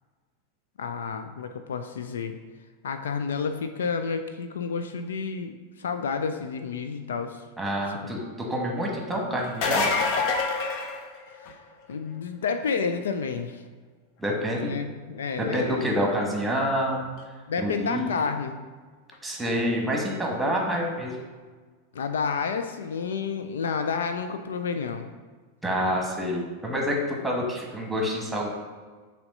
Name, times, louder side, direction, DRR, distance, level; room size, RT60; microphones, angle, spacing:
voice 1, 0.8-2.4 2.8-7.4 11.9-13.6 14.6-15.9 17.5-18.6 21.9-25.1, left 5 dB, 65° left, 7 dB, 0.4 m, -30 dB
voice 2, 7.6-9.9 14.2-14.7 15.4-17.1 17.6-18.1 19.2-21.2 25.6-28.5, equal, 5° right, 0 dB, 1.4 m, -27 dB
sound 1, 9.4-11.7 17.2-17.3 19.1-19.2, left 4 dB, 45° left, 0.7 m, -26 dB
6.8 x 3.1 x 5.3 m, 1.4 s
figure-of-eight pair, 90°, 0 cm